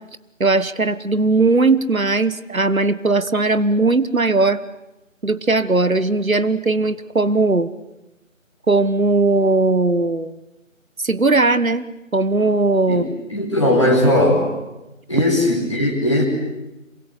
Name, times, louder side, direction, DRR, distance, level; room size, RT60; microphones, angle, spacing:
voice 1, 0.4-4.6 5.2-7.7 8.7-10.4 11.0-11.9 12.1-13.1, right 3 dB, 85° right, 15 dB, 1.5 m, -18 dB
voice 2, 13.3-14.5 15.1-16.2, left 1 dB, 20° left, -3 dB, 5.0 m, -18 dB
27.5 x 25.5 x 8.2 m, 0.99 s
figure-of-eight pair, 175°, 40 cm